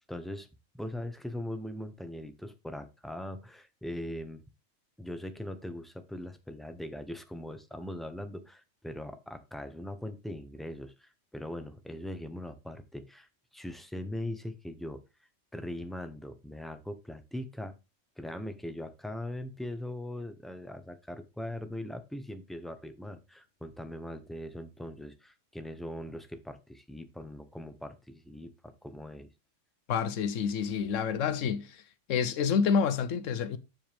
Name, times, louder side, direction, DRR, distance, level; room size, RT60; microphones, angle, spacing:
voice 1, 0.1-0.5 0.7-4.4 5.0-15.0 15.5-17.7 18.2-29.3, left 1 dB, ahead, 0.5 m, -40 dB
voice 2, 29.9-31.8 32.1-33.6, left 6 dB, 75° left, 1.1 m, -28 dB
7.6 x 7.2 x 3.4 m
omnidirectional pair, 1.3 m